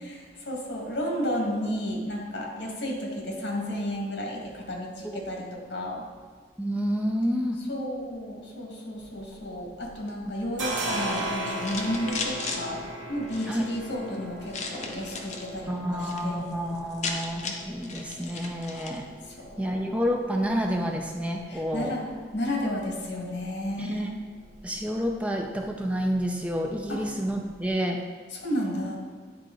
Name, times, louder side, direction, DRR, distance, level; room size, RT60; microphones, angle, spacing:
voice 1, 0.0-6.1 7.7-12.8 13.1-16.4 19.3-19.8 21.5-24.1 26.9-27.1 28.3-29.0, equal, 80° left, -1 dB, 1.7 m, -32 dB
voice 2, 6.6-7.6 13.5-13.6 15.7-19.1 19.6-22.0 23.8-24.1 24.6-28.0, equal, 5° right, 2 dB, 0.4 m, -29 dB
sound 1, 9.0-9.9 10.2-27.7, right 1 dB, 85° right, 1.1 m, -39 dB
sound 2, 10.8-12.6 13.2-13.8 14.5-15.5 15.8-16.2 16.5-16.6 16.8-19.0, left 4 dB, 40° left, 0.6 m, -36 dB
9.9 x 3.8 x 3.7 m, 1.6 s
head